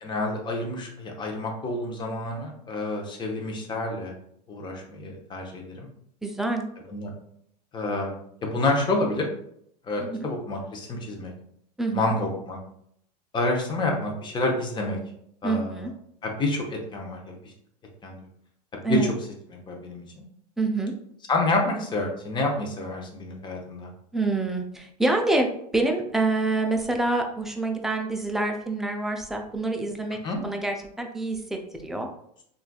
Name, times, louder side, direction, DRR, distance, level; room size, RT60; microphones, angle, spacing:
voice 1, 0.0-4.1 4.5-5.9 6.9-7.1 7.7-9.3 9.8-11.3 11.9-12.6 13.3-15.0 15.4-15.9 16.2-17.5 18.0-18.2 18.9-19.1 19.7-20.2 21.3-23.9 30.2-30.4, left 2 dB, 20° left, 0 dB, 0.7 m, -28 dB
voice 2, 6.2-6.6 10.0-10.2 11.8-12.0 15.4-15.9 18.8-19.1 20.6-20.9 24.1-25.5 25.7-32.1, right 2 dB, ahead, 2 dB, 0.4 m, -26 dB
3.2 x 2.4 x 2.3 m, 0.70 s
hypercardioid pair, 100°, 21 cm